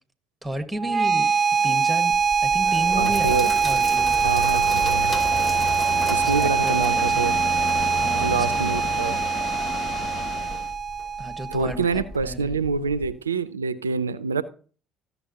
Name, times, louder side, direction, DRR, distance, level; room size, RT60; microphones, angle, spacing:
voice 1, 0.4-1.3 1.6-2.1 2.4-4.2 6.2-7.6 8.0-8.7 11.2-12.9, right 1 dB, 5° right, 1.4 m, -33 dB
sound 1, 0.8-11.8, right 6 dB, 35° right, 0.8 m, -23 dB
Sink (filling or washing), 2.1-13.1, equal, 25° left, 3.2 m, -37 dB
sound 2, 2.7-10.7, left 8 dB, 50° left, 0.5 m, -34 dB
voice 2, 3.0-3.5 4.2-5.2 6.1-7.4 8.1-9.2 11.5-14.4, right 5 dB, 90° right, 0.4 m, -26 dB
14.0 x 6.9 x 2.8 m
figure-of-eight pair, 55°, 0 cm